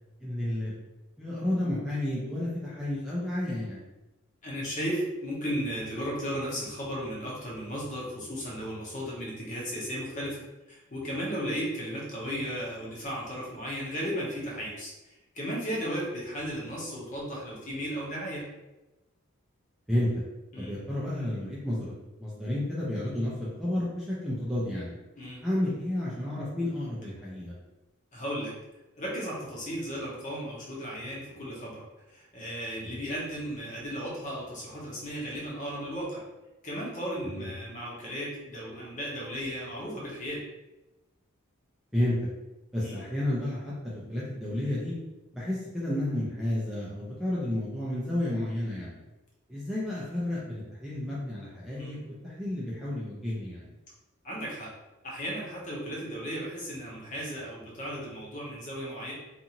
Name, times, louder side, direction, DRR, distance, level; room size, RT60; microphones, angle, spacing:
voice 1, 0.2-0.7 1.2-3.8 19.9-20.2 20.6-21.9 22.2-25.0 25.4-27.6 37.2-37.5 41.9-42.3 42.7-45.0 45.3-49.0 49.5-53.7, left 1 dB, ahead, -8 dB, 0.4 m, -31 dB
voice 2, 4.4-14.9 15.3-18.4 20.5-20.7 25.2-25.4 28.1-28.5 29.0-31.8 32.1-36.2 36.6-40.4 42.8-43.0 51.7-52.0 54.2-54.7 55.0-59.1, equal, 35° left, -5 dB, 0.8 m, -35 dB
2.6 x 2.5 x 2.8 m, 1.0 s
head